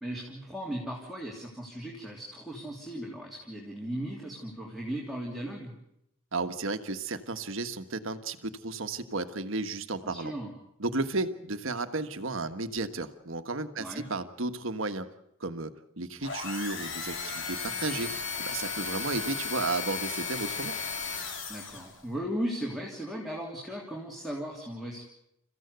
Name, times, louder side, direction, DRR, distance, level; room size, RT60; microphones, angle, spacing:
voice 1, 0.0-5.7 10.0-10.5 13.8-14.0 21.5-25.0, equal, ahead, -3 dB, 3.1 m, -37 dB
voice 2, 6.3-10.3 10.8-15.1 15.4-15.7 16.0-18.1 18.4-20.8, right 3 dB, 70° right, 9 dB, 1.5 m, -33 dB
sound 1, 16.2-22.0, left 5 dB, 60° left, 3.2 m, -35 dB
29.0 x 15.0 x 8.1 m, 0.81 s
head